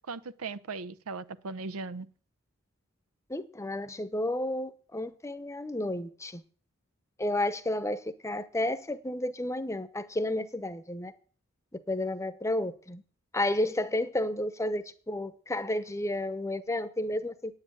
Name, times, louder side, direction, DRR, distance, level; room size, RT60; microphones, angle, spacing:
voice 1, 0.1-2.1, right 4 dB, 90° right, 0.7 m, -38 dB
voice 2, 3.3-6.4 7.2-11.1 11.9-13.0 13.3-17.6, left 1 dB, 15° left, 0.8 m, -31 dB
8.9 x 8.7 x 9.1 m
head